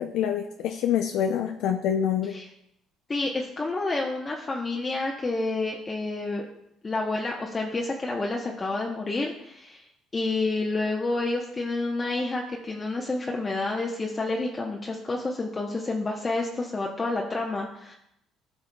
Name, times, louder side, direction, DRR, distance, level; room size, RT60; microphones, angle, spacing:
voice 1, 0.0-2.3, left 9 dB, 70° left, 4 dB, 0.4 m, -26 dB
voice 2, 3.1-6.4 6.8-9.8 10.1-17.9, left 2 dB, 30° left, -1 dB, 0.9 m, -29 dB
12.0 x 5.6 x 2.3 m, 0.78 s
supercardioid pair, 70°, 0 cm